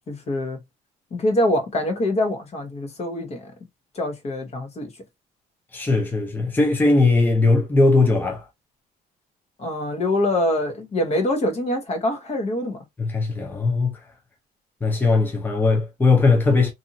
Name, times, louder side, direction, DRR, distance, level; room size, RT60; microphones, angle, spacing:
voice 1, 0.1-0.6 1.1-3.5 3.9-4.9 9.6-12.8, left 1 dB, 40° left, 1.1 m, -24 dB
voice 2, 5.7-8.4 13.0-14.0 14.8-16.7, left 3 dB, 10° left, 0.7 m, -19 dB
2.7 x 2.6 x 2.7 m
cardioid pair, 110°, 17 cm